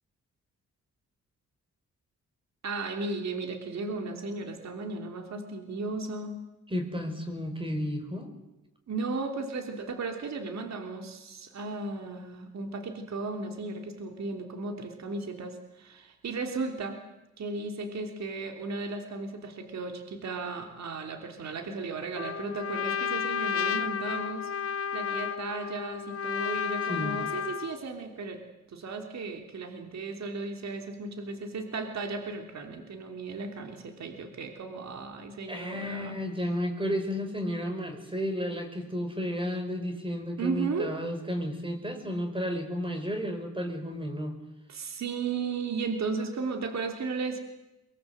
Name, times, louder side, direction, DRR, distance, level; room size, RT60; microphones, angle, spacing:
voice 1, 2.6-6.4 8.9-17.0 17.4-24.5 24.9-28.4 28.7-36.1 40.4-41.0 44.7-47.4, right 3 dB, 60° right, 4 dB, 3.4 m, -35 dB
voice 2, 6.7-8.3 26.9-27.3 35.5-44.4, equal, 15° right, 6 dB, 4.7 m, -32 dB
Trumpet, 22.1-27.8, left 7 dB, 45° left, 0.9 m, -32 dB
23.0 x 23.0 x 8.0 m, 0.98 s
cardioid pair, 110°, 31 cm